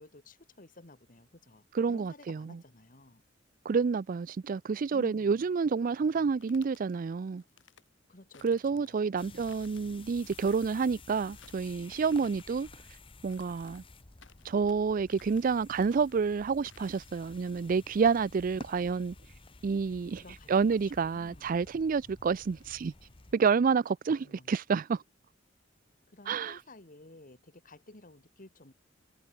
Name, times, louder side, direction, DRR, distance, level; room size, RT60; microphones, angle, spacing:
voice 1, 0.0-3.2 4.9-5.4 8.1-9.6 12.2-12.3 18.5-18.9 20.2-21.6 24.2-24.5 26.1-28.7, left 2 dB, 45° left, 2.4 m, -54 dB
voice 2, 1.7-2.6 3.6-7.4 8.4-12.7 13.2-13.8 14.4-19.1 19.6-20.2 20.5-22.9 23.3-25.0 26.3-26.6, right 5 dB, 45° right, 0.4 m, -29 dB
sound 1, 6.1-6.8 7.4-7.9 8.3-9.0 9.4-9.8 10.3-10.8 11.2-11.7 12.1-12.7 13.3-13.9 14.2-14.8 15.1-15.5 15.8-16.2 16.7-17.0, left 6 dB, 80° left, 4.3 m, -60 dB
sound 2, 9.2-23.3, left 3 dB, 30° left, 1.0 m, -53 dB
head